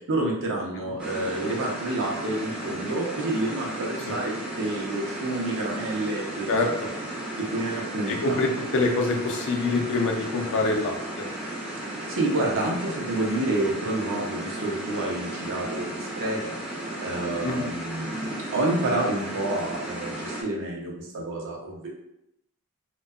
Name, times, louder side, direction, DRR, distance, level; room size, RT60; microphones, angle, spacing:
voice 1, 0.1-6.5 7.4-8.4 12.1-16.6 17.0-21.9, right 2 dB, 60° right, -1 dB, 0.6 m, -29 dB
sound 1, 1.0-20.4, right 1 dB, 5° right, 0.5 m, -35 dB
voice 2, 8.1-11.3 17.4-17.7, left 3 dB, 60° left, 2 dB, 0.4 m, -25 dB
2.7 x 2.2 x 2.3 m, 0.82 s
head